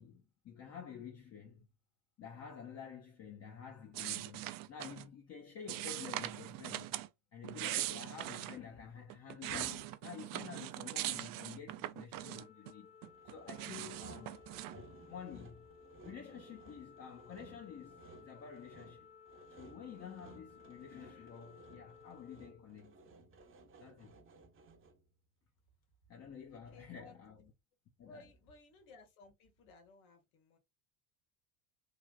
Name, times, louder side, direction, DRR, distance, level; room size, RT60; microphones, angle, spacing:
voice 1, 0.0-1.7 2.2-7.0 7.3-12.9 13.3-14.4 14.7-15.7 16.0-19.1 19.6-22.9 23.8-24.2 26.1-27.5 28.0-28.3, left 7 dB, 35° left, 0.7 m, -50 dB
sound 1, 3.9-5.1 5.7-7.1 7.4-8.6 9.1-12.7 13.0-14.8, right 15 dB, 55° right, 0.5 m, -41 dB
Organ, 12.2-23.3, left 6 dB, 15° left, 0.3 m, -59 dB
Sawing, 13.1-25.1, right 3 dB, 30° right, 0.8 m, -59 dB
voice 2, 26.7-27.2 28.0-30.6, left 3 dB, 90° left, 1.3 m, -59 dB
3.3 x 2.4 x 2.3 m
supercardioid pair, 85°, 41 cm